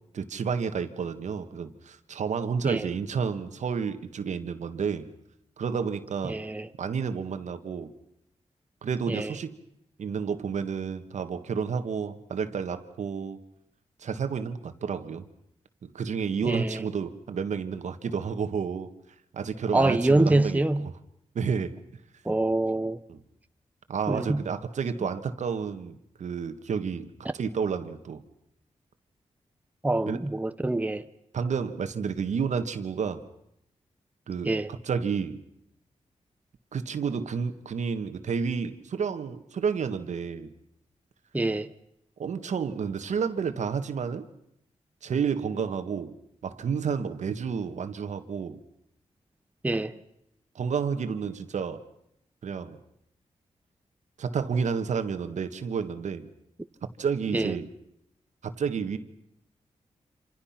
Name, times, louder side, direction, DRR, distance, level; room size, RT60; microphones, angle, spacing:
voice 1, 0.1-5.1 5.6-6.4 6.8-7.9 8.8-9.6 10.0-13.4 14.0-15.2 15.8-18.9 19.3-20.9 21.3-21.8 23.1-23.2 23.9-27.1 27.3-28.2 30.0-30.2 31.3-33.2 34.3-35.4 36.7-40.5 42.2-44.3 45.0-46.1 46.4-48.6 50.5-51.8 52.4-52.8 54.2-56.3 57.0-57.7 58.4-59.0, right 6 dB, 80° right, 1.7 m, -30 dB
voice 2, 6.2-6.7 9.1-9.3 16.4-16.8 19.7-20.9 22.2-23.0 24.1-24.4 29.8-31.0 34.4-34.7 41.3-41.7 49.6-50.0 57.3-57.5, right 2 dB, 15° right, 0.9 m, -25 dB
27.5 x 26.5 x 5.9 m
wide cardioid pair, 95°, 12 cm